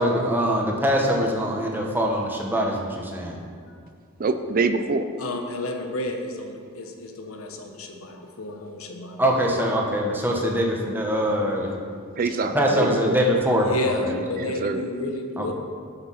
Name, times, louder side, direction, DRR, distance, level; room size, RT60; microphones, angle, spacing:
voice 1, 0.0-3.4 9.2-11.8 12.5-13.7 14.0-14.1 15.4-15.5, equal, 10° right, -1 dB, 1.1 m, -23 dB
voice 2, 4.2-5.1 12.1-13.2 14.1-14.9, right 3 dB, 45° right, 9 dB, 0.4 m, -25 dB
voice 3, 5.2-9.2 13.6-15.5, left 2 dB, 85° left, 4 dB, 1.1 m, -31 dB
8.0 x 7.1 x 5.7 m, 2.1 s
head